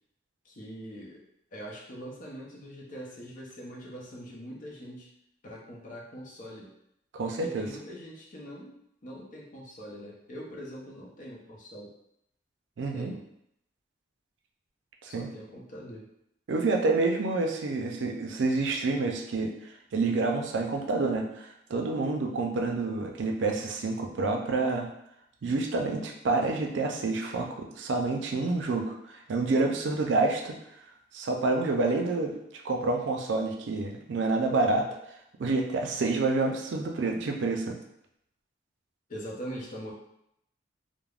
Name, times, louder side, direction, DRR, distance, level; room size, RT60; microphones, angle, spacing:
voice 1, 0.4-1.2 1.5-5.1 5.4-6.7 7.2-8.8 9.0-11.9 12.9-13.3 15.1-16.1 39.1-39.9, equal, 45° left, -3 dB, 0.6 m, -43 dB
voice 2, 7.1-7.7 12.8-13.1 15.0-15.3 16.5-19.5 19.9-24.9 25.4-28.9 29.3-30.6 31.1-32.4 32.6-34.9 35.4-37.8, right 3 dB, 70° right, 2 dB, 0.4 m, -28 dB
3.3 x 2.0 x 2.4 m, 0.77 s
head